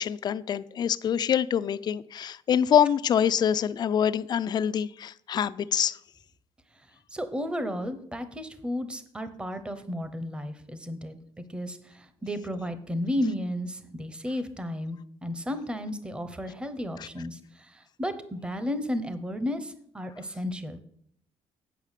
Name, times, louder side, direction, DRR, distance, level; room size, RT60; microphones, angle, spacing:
voice 1, 0.0-6.0 17.0-17.1, left 8 dB, 40° left, 0.3 m, -25 dB
voice 2, 7.1-20.8, left 1 dB, 10° right, 0.7 m, -33 dB
8.9 x 5.6 x 6.5 m
cardioid pair, 155°, 11 cm